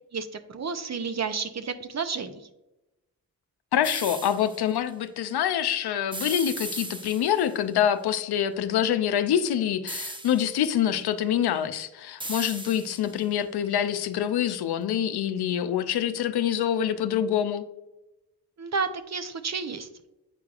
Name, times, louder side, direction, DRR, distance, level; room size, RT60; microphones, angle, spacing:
voice 1, 0.1-2.5 18.6-19.9, right 5 dB, 40° right, 10 dB, 0.7 m, -31 dB
voice 2, 3.7-17.7, left 9 dB, 70° left, 10 dB, 0.6 m, -26 dB
sound 1, 3.8-4.6 6.1-7.5 9.9-10.7 12.2-13.2, right 1 dB, 10° right, 0.7 m, -37 dB
8.4 x 4.6 x 2.4 m, 0.95 s
supercardioid pair, 40°, 40 cm